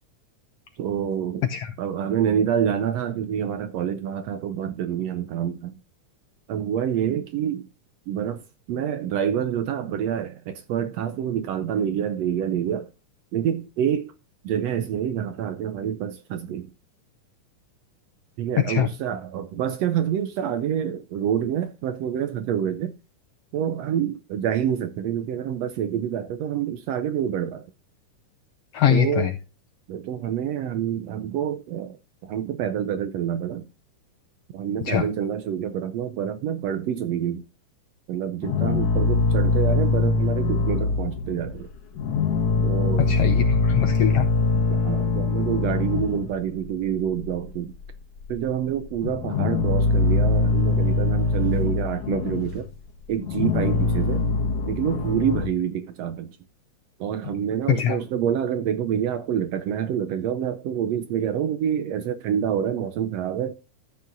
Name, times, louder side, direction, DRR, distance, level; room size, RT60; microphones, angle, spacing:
voice 1, 0.8-1.5 1.8-5.7 6.5-7.7 8.1-8.4 8.7-12.9 13.3-14.1 14.4-16.7 18.4-22.9 23.5-27.7 28.9-29.3 29.9-32.0 32.2-33.6 34.5-37.4 38.1-41.7 42.6-43.2 44.7-47.7 48.3-52.7 53.1-54.3 54.7-56.4 57.0-63.5, right 9 dB, 75° right, 1.6 m, -27 dB
voice 2, 18.6-18.9 28.7-29.3 34.9-35.0 43.0-44.3 57.8-58.0, left 9 dB, 80° left, 1.4 m, -22 dB
sound 1, 38.4-41.6 41.9-46.6 46.8-47.9 48.2-48.4 48.7-52.7 53.1-55.5, left 4 dB, 55° left, 2.1 m, -23 dB
13.5 x 8.5 x 2.6 m
omnidirectional pair, 3.5 m